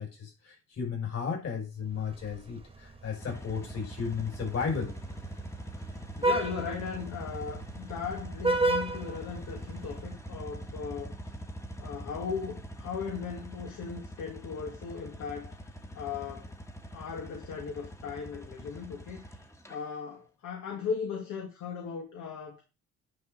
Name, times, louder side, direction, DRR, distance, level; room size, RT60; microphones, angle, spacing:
voice 1, 0.0-5.0, left 6 dB, 55° left, 5.2 m, -34 dB
Vehicle horn car horn honking, 1.9-10.0, right 2 dB, 20° right, 1.3 m, -34 dB
sound 1, 3.1-19.8, right 1 dB, 10° left, 1.3 m, -43 dB
voice 2, 6.2-11.1 11.8-15.5 15.9-16.5 16.9-19.4 19.7-22.6, left 6 dB, 75° left, 1.6 m, -37 dB
9.6 x 5.0 x 3.8 m
cardioid pair, 90°, 30 cm